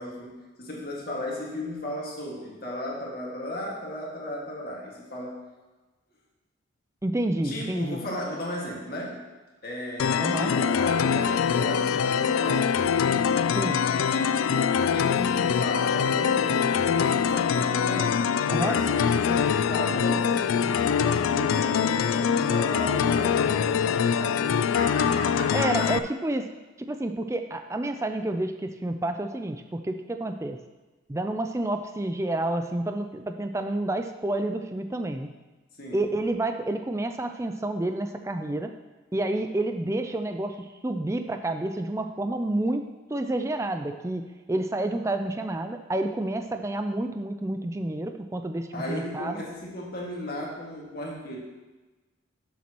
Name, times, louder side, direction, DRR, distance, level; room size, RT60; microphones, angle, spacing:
voice 1, 0.0-5.4 7.4-9.2 9.6-12.7 14.8-18.1 18.6-25.9 35.8-36.1 48.7-51.4, left 1 dB, 50° left, -3 dB, 1.9 m, -35 dB
voice 2, 7.0-8.0 10.2-10.5 13.5-13.8 18.5-18.8 25.5-26.5 26.8-30.6 31.1-35.3 35.9-38.7 39.1-49.4, right 1 dB, 15° right, 6 dB, 0.4 m, -29 dB
sound 1, 10.0-26.0, left 7 dB, 85° left, 0.3 m, -24 dB
12.0 x 7.1 x 3.0 m, 1.2 s
head